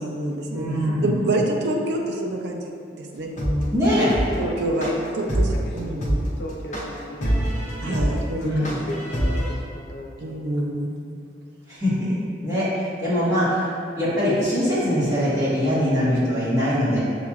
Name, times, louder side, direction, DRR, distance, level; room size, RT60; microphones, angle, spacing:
voice 1, 0.0-0.7 1.0-3.3 4.4-5.5 5.7-6.2 7.8-8.7 10.2-11.2, right 1 dB, 70° right, 1 dB, 0.5 m, -27 dB
voice 2, 0.5-1.2 3.7-4.1 8.4-8.8 11.7-13.7 14.0-17.0, equal, 15° right, -12 dB, 1.3 m, -22 dB
sound 1, 3.4-9.5, equal, 40° left, 0.7 m, -24 dB
voice 3, 3.9-6.0 6.4-8.0 8.3-10.6, left 1 dB, 80° left, -1 dB, 0.7 m, -36 dB
6.7 x 2.9 x 2.4 m, 2.4 s
head